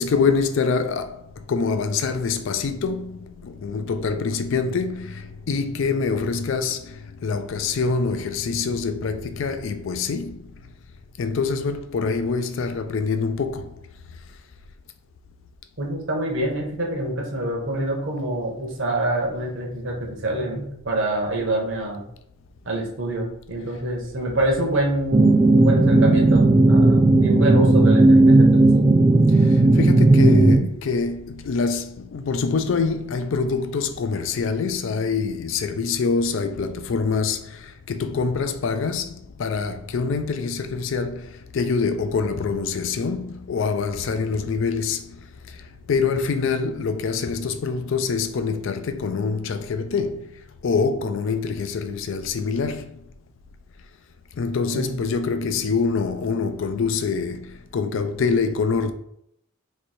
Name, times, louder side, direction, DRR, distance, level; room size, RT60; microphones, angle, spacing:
voice 1, 0.0-10.5 11.2-13.7 24.2-24.4 25.2-25.3 29.3-45.2 45.4-50.3 50.6-53.0 54.4-58.9, left 5 dB, 55° left, 0.3 m, -25 dB
voice 2, 15.8-22.0 22.7-28.8 54.7-54.9, right 1 dB, 55° right, 1.0 m, -26 dB
sound 1, 25.1-30.6, right 2 dB, 25° right, 0.4 m, -15 dB
3.1 x 2.6 x 4.1 m
head